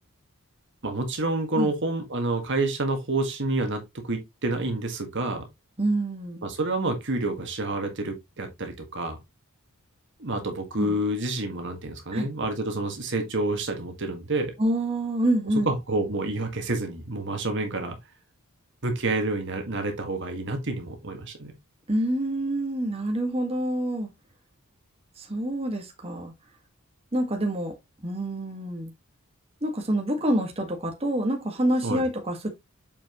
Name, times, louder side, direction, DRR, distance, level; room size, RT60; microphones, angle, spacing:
voice 1, 0.8-5.5 6.4-9.2 10.2-14.5 15.7-18.0 18.8-21.5 31.8-32.0, right 2 dB, 55° right, 1.8 m, -28 dB
voice 2, 5.8-6.4 10.8-11.0 12.1-12.3 14.6-15.7 21.9-24.1 25.2-26.3 27.1-27.8 28.0-28.9 29.6-32.5, right 1 dB, 25° right, 1.7 m, -27 dB
7.2 x 5.4 x 3.0 m
head